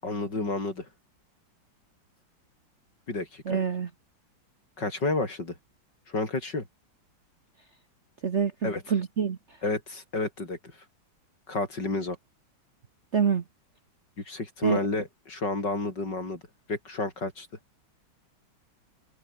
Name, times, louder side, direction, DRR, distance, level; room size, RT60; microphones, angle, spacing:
voice 1, 0.0-0.9 3.1-3.6 4.8-5.6 6.1-6.6 8.6-8.9 9.6-10.6 11.5-12.2 14.2-16.4 16.7-17.5, left 3 dB, 60° left, 6.1 m, -30 dB
voice 2, 3.5-3.9 8.2-9.4 13.1-13.4 14.6-14.8, right 6 dB, 45° right, 1.1 m, -26 dB
omnidirectional pair, 2.2 m